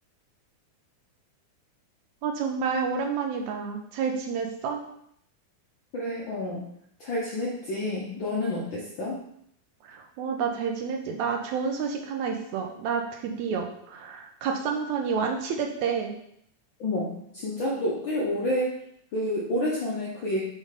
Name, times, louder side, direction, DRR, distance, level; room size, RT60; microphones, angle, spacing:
voice 1, 2.2-4.8 9.8-16.2, right 6 dB, 80° right, 3 dB, 1.9 m, -29 dB
voice 2, 5.9-6.6 7.0-9.2 16.8-18.8 19.1-20.4, left 1 dB, 80° left, -4 dB, 1.0 m, -29 dB
5.3 x 3.7 x 4.8 m, 0.72 s
omnidirectional pair, 3.4 m